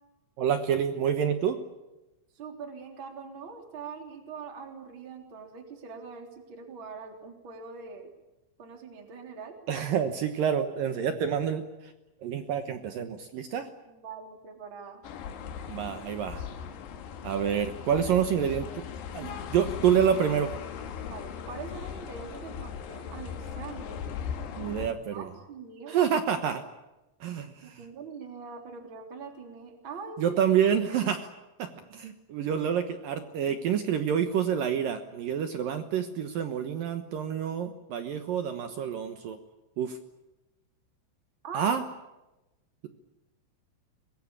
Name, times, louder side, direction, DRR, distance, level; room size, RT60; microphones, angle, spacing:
voice 1, 0.4-1.6 9.7-11.6 12.2-13.7 15.7-16.5 17.2-18.8 19.1-20.5 24.6-25.3 25.9-26.6 27.2-27.8 30.2-31.3 31.6-39.4 39.8-40.0 41.5-41.8, right 8 dB, 85° right, 8 dB, 2.0 m, -28 dB
voice 2, 2.3-8.1 8.6-9.5 13.9-15.0 17.9-18.1 21.0-24.0 24.8-26.1 27.6-30.4 33.4-33.6 41.4-41.7, right 5 dB, 25° right, 4 dB, 3.4 m, -43 dB
sound 1, 15.0-24.9, left 7 dB, 65° left, 3.6 m, -38 dB
24.0 x 22.0 x 8.8 m, 1.0 s
omnidirectional pair, 5.9 m